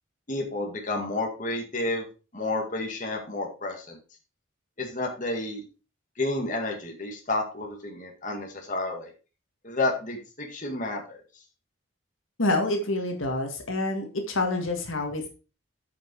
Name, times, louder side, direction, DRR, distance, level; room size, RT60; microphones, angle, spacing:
voice 1, 0.3-2.1 2.3-4.0 4.8-5.6 6.2-9.1 9.6-11.2, left 2 dB, 35° left, 1 dB, 2.0 m, -30 dB
voice 2, 12.4-15.3, left 2 dB, 70° left, 3 dB, 1.8 m, -27 dB
9.5 x 5.6 x 4.7 m, 0.33 s
head